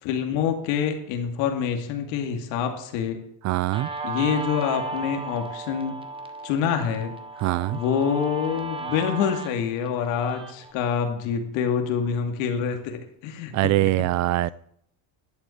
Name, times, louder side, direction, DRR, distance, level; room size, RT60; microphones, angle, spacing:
voice 1, 0.0-3.2 4.0-6.0 6.4-7.1 7.7-14.1, left 7 dB, 80° left, 4 dB, 2.4 m, -26 dB
voice 2, 3.4-3.9 7.4-7.8 13.5-14.5, right 17 dB, 40° right, 21 dB, 0.4 m, -23 dB
Guitar, 3.7-10.7, right 3 dB, 10° right, 1.2 m, -35 dB
11.5 x 8.2 x 8.4 m, 0.71 s
cardioid pair, 165°, 44 cm